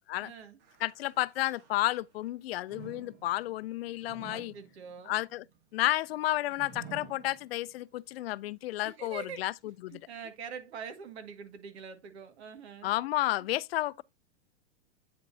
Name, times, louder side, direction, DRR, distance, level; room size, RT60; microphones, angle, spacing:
voice 1, 0.2-0.6 4.0-5.2 8.4-8.5 8.8-9.4 9.9-12.9, right 6 dB, 70° right, 1.9 m, -45 dB
sound 1, 0.6-2.2 2.6-7.9 8.4-8.5 9.4-9.5, right 5 dB, 30° right, 1.2 m, -52 dB
voice 2, 0.8-4.5 5.1-5.4 5.7-9.5 9.8-10.0 12.8-14.0, left 16 dB, 60° left, 0.5 m, -31 dB
8.9 x 5.2 x 2.7 m
supercardioid pair, 160°, 34 cm